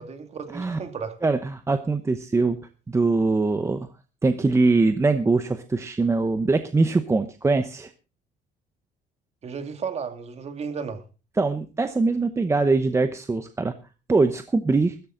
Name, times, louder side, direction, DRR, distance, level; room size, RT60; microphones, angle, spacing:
voice 1, 0.0-1.2 9.4-11.0, right 6 dB, 35° right, 2.4 m, -34 dB
voice 2, 1.2-2.6 2.9-3.9 4.2-7.9 11.4-13.7 14.1-15.0, right 3 dB, 15° right, 0.9 m, -22 dB
14.5 x 14.0 x 3.8 m
cardioid pair, 140°, 18 cm